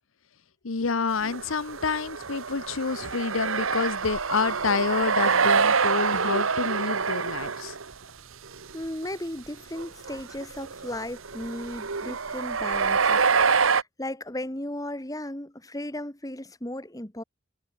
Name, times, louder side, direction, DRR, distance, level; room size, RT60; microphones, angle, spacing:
voice 1, 0.6-7.8, left 4 dB, 85° left, 0.9 m, -28 dB
sound 1, 1.2-7.9 8.5-8.8 9.0-9.1 9.8-13.8, right 5 dB, 90° right, 1.3 m, -26 dB
voice 2, 8.7-17.2, left 1 dB, 15° left, 1.7 m, -36 dB
head